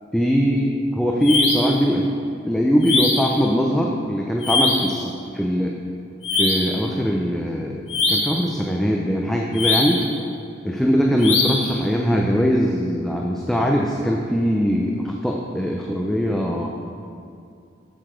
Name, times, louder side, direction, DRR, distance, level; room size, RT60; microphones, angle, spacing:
voice 1, 0.1-2.1 2.4-5.7 6.4-10.0 10.6-16.7, equal, ahead, -1 dB, 0.5 m, -21 dB
sound 1, 1.2-1.8 2.8-3.4 4.4-5.0 6.2-6.8 7.9-8.4 9.5-10.1 11.2-11.8, left 3 dB, 80° left, 1.5 m, -22 dB
7.5 x 6.9 x 5.0 m, 2.5 s
head